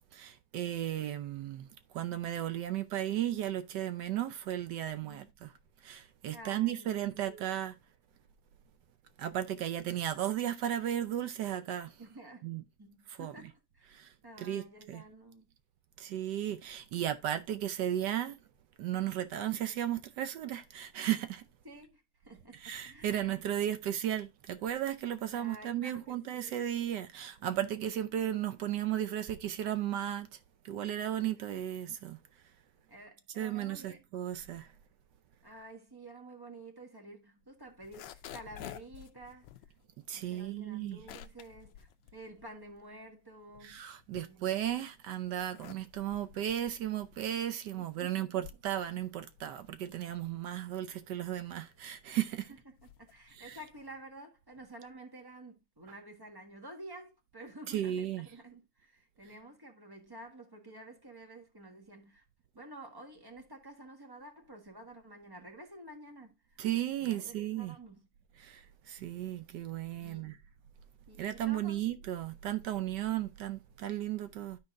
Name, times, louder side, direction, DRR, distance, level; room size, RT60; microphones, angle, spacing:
voice 1, 0.1-1.7 1.9-5.5 5.8-7.7 9.2-11.9 12.4-12.6 13.2-13.3 13.9-14.1 14.4-15.0 16.0-18.4 18.8-21.4 22.6-30.3 30.6-32.2 33.4-34.7 40.1-41.0 43.6-52.5 53.3-53.6 57.7-58.3 66.6-67.8 68.4-70.4 71.2-74.6, right 11 dB, 70° right, 1.1 m, -35 dB
voice 2, 6.3-7.3 12.0-12.4 12.8-14.0 14.2-15.5 21.6-23.1 25.3-26.7 32.9-34.0 35.4-39.5 40.1-43.8 44.2-44.5 47.7-48.4 53.0-62.2 62.5-66.6 67.0-68.1 70.0-70.3 71.1-71.8, right 1 dB, 15° right, 1.1 m, -51 dB
sound 1, 37.7-43.0 43.3-44.8 45.2-54.0, left 11 dB, 75° left, 1.3 m, -52 dB
12.5 x 4.4 x 2.5 m
omnidirectional pair, 2.2 m